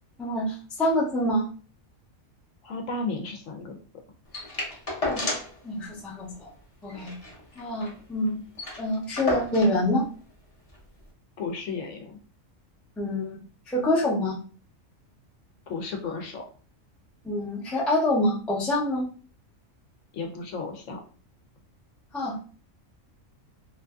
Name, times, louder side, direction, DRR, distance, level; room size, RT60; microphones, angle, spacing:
voice 1, 0.2-1.5 5.0-5.2 5.6-6.5 6.8-7.1 7.6-8.4 8.8-10.0 13.0-13.4 13.7-14.4 17.2-19.1 22.1-22.4, left 1 dB, ahead, -5 dB, 0.3 m, -26 dB
voice 2, 2.6-3.8 11.4-12.2 15.7-16.5 20.1-21.0, left 4 dB, 70° left, 3 dB, 0.9 m, -33 dB
sound 1, 4.3-5.6 5.9-6.0 6.3-6.5 6.9-8.0 8.3-8.4 8.5-9.8 10.7-10.8, left 2 dB, 35° left, 0.6 m, -32 dB
2.6 x 2.5 x 2.3 m, 0.39 s
omnidirectional pair, 1.4 m